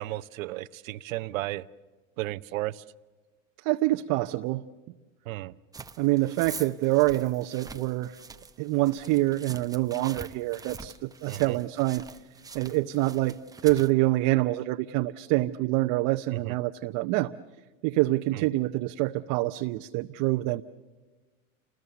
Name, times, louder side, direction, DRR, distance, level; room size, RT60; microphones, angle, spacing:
voice 1, 0.0-1.7 2.2-2.8 5.3-5.5 11.3-11.6 16.4-16.5 18.3-18.4, right 17 dB, 80° right, 15 dB, 0.8 m, -34 dB
voice 2, 3.6-4.6 6.0-8.2 8.6-12.1 12.5-17.3 17.8-20.6, right 18 dB, 50° right, 6 dB, 0.8 m, -26 dB
sound 1, 5.7-13.9, right 4 dB, 10° right, 0.8 m, -45 dB
29.0 x 21.0 x 6.9 m, 1.3 s
supercardioid pair, 120°, 40 cm